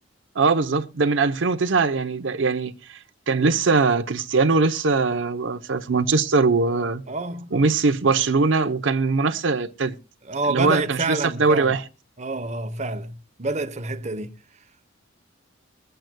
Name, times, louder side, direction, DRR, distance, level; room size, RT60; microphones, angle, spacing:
voice 1, 0.4-3.0 3.3-7.0 7.5-10.0 10.5-11.8, right 4 dB, 70° right, 0.8 m, -21 dB
voice 2, 7.1-7.7 10.3-11.8 12.2-14.3, right 2 dB, 35° right, 0.9 m, -28 dB
23.0 x 9.1 x 2.2 m
head